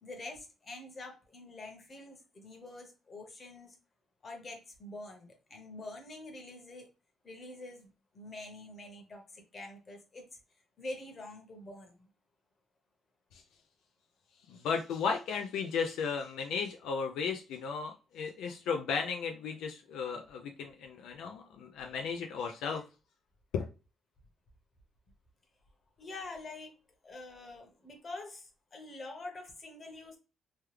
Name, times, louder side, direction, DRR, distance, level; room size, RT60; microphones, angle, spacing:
voice 1, 0.0-3.8 4.2-6.9 7.2-10.3 10.8-12.1 26.0-26.7 27.0-30.2, left 2 dB, 40° left, 3 dB, 1.1 m, -46 dB
voice 2, 14.5-22.8 23.5-23.6, left 5 dB, 85° left, 3 dB, 0.4 m, -35 dB
3.1 x 2.2 x 3.3 m, 0.31 s
cardioid pair, 90°, 0 cm